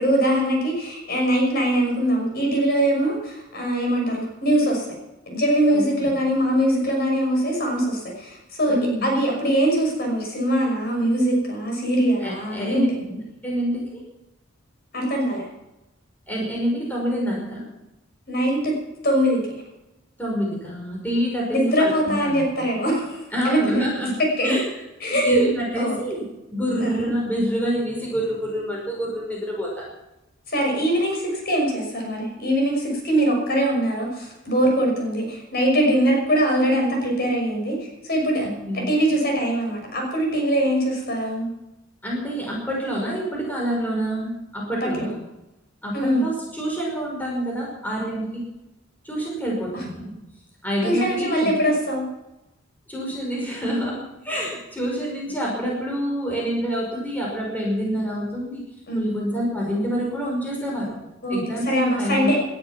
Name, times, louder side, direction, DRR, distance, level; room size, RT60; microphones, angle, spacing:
voice 1, 0.0-4.9 5.3-8.8 9.0-13.2 14.9-15.4 18.3-18.7 19.0-19.4 21.5-23.8 24.2-24.6 25.0-25.5 25.7-26.0 26.8-27.1 30.5-37.8 38.0-38.5 38.7-41.5 44.8-45.0 45.9-46.3 49.7-49.8 50.8-52.1 58.9-59.1 61.2-62.4, right 1 dB, 50° left, 1 dB, 6.0 m, -22 dB
voice 2, 5.7-6.1 8.7-9.1 12.2-12.9 13.4-14.0 16.3-17.6 20.2-22.4 23.3-24.1 24.4-24.6 25.1-26.2 26.5-29.8 38.4-38.9 42.0-45.2 45.8-48.4 49.0-50.1 50.6-51.5 52.9-54.0 54.2-58.6 58.9-61.0 61.3-62.3, equal, 10° left, -3 dB, 5.4 m, -27 dB
19.0 x 12.5 x 6.0 m, 0.96 s
head